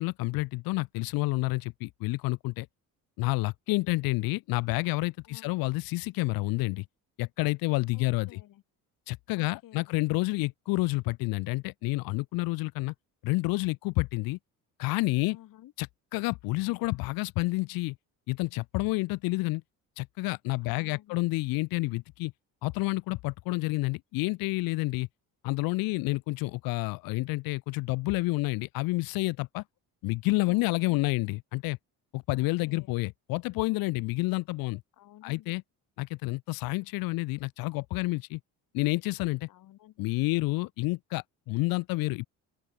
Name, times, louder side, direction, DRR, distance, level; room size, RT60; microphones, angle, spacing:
voice 1, 0.0-2.7 3.2-6.8 7.2-8.4 9.1-12.9 13.2-14.4 14.8-15.4 15.8-18.0 18.3-19.6 20.0-22.3 22.6-25.1 25.4-29.6 30.0-31.8 32.1-34.8 35.2-35.6 36.0-38.4 38.7-39.5 40.0-42.3, left 22 dB, 90° left, 0.6 m, -29 dB
voice 2, 5.2-5.6 7.9-8.6 9.4-10.0 15.3-15.7 20.6-21.3 30.5-31.1 32.3-32.9 34.9-35.5 39.5-40.1, left 14 dB, 70° left, 5.3 m, -53 dB
open air
cardioid pair, 120°, 34 cm